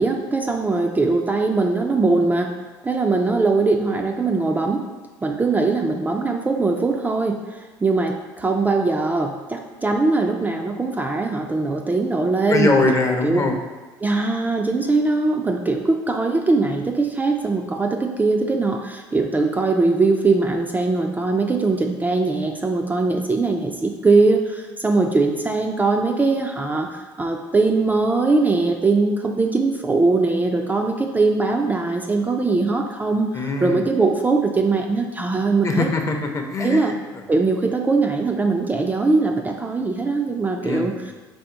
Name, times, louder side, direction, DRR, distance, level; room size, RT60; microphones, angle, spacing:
voice 1, 0.0-2.5 2.8-4.8 5.2-12.7 13.2-13.5 14.0-35.9 36.6-36.9 37.3-41.1, right 3 dB, 15° right, 2 dB, 0.3 m, -21 dB
voice 2, 12.5-13.6 33.3-33.9 35.6-36.9 40.6-41.0, left 2 dB, 30° left, 3 dB, 0.6 m, -22 dB
3.5 x 2.8 x 4.5 m, 1.2 s
supercardioid pair, 80°, 10 cm